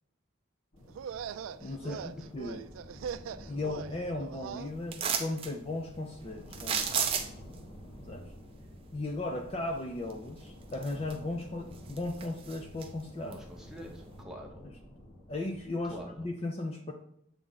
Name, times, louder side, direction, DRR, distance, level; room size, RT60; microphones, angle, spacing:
sound 1, 0.7-16.3, equal, 80° left, 1.6 m, -50 dB
sound 2, 0.9-4.7, right 8 dB, 90° right, 0.3 m, -41 dB
voice 1, 1.6-2.6 3.5-6.9 8.1-8.3 8.9-13.3 15.3-16.9, left 2 dB, 30° left, 2 dB, 0.5 m, -36 dB
sound 3, 4.9-5.5 6.5-7.5 10.1-10.2 10.7-11.4 11.7-12.9 13.3-13.4, right 6 dB, 30° right, 0.5 m, -32 dB
voice 2, 13.2-14.7 15.8-16.3, equal, 5° right, 0 dB, 0.9 m, -46 dB
7.4 x 3.4 x 4.0 m, 0.75 s
head